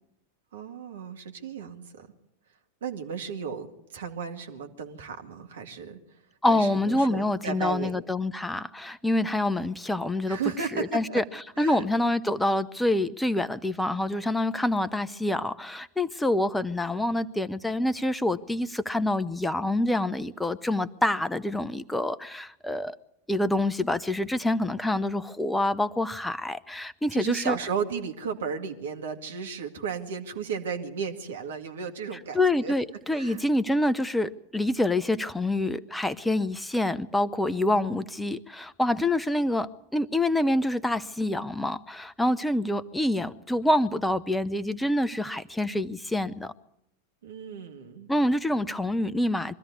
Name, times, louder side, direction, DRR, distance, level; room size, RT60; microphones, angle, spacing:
voice 1, 0.5-2.1 2.8-6.0 6.5-8.0 10.3-11.2 11.6-11.8 27.1-32.7 33.1-33.5 37.5-37.9 47.2-48.1, right 6 dB, 60° right, 5 dB, 2.2 m, -34 dB
voice 2, 6.4-10.4 10.7-11.2 11.6-23.0 23.3-27.6 32.3-46.5 48.1-49.6, left 1 dB, 5° left, 15 dB, 0.8 m, -26 dB
23.0 x 13.5 x 9.6 m, 0.81 s
figure-of-eight pair, 90°, 0 cm